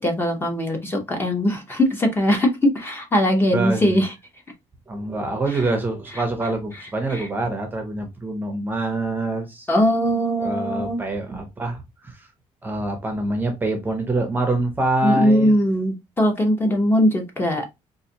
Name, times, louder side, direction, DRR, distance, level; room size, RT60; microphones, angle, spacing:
voice 1, 0.0-4.1 7.1-7.2 9.7-11.0 15.0-17.7, equal, 20° left, 0.8 m, -20 dB
voice 2, 3.5-4.0 4.9-9.7 10.4-12.3 12.6-15.6, right 2 dB, 15° right, 0.7 m, -25 dB
4.0 x 2.5 x 2.8 m
cardioid pair, 165°, 12 cm